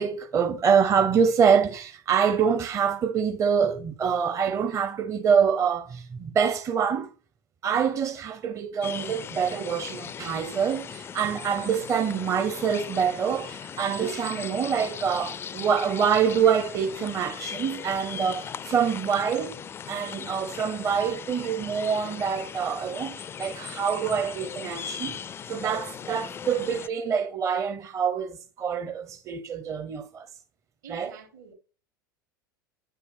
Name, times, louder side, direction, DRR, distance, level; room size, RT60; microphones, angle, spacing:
voice 1, 0.0-7.1 7.6-19.6 19.9-25.2 25.5-30.3 30.9-31.1, right 7 dB, 25° right, 0.8 m, -25 dB
sound 1, 8.8-26.9, left 7 dB, 20° left, 0.4 m, -38 dB
voice 2, 30.8-31.5, right 7 dB, 65° right, 2.6 m, -46 dB
9.2 x 5.6 x 3.4 m
figure-of-eight pair, 80°, 11 cm